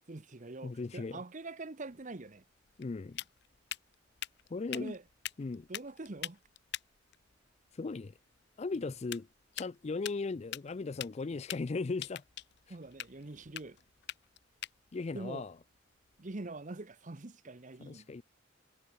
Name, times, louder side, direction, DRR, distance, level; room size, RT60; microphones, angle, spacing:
voice 1, 0.1-2.4 4.7-5.0 5.7-6.4 12.7-13.8 15.1-15.4 16.2-18.1, right 2 dB, 40° right, 0.9 m, -44 dB
voice 2, 0.6-1.2 2.8-3.2 4.5-5.0 5.4-5.7 7.7-8.2 8.6-9.3 9.5-12.2 12.7-12.8 14.9-15.6 17.8-18.2, left 3 dB, 35° left, 0.4 m, -37 dB
sound 1, 1.9-16.6, left 13 dB, 60° left, 0.8 m, -47 dB
head